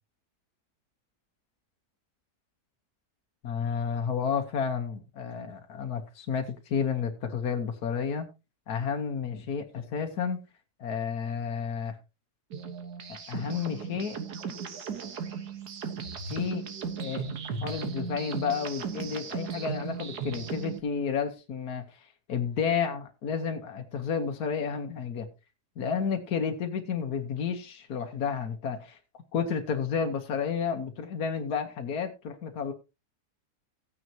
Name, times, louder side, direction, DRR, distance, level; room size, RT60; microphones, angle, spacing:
voice 1, 3.4-8.3 8.7-10.4 10.8-12.0 13.1-14.2 16.3-16.6 17.0-17.3 17.6-25.3 25.8-32.7, left 6 dB, 70° left, 1.6 m, -31 dB
sound 1, 12.5-20.8, right 6 dB, 85° right, 1.9 m, -36 dB
15.0 x 9.3 x 2.9 m
omnidirectional pair, 1.7 m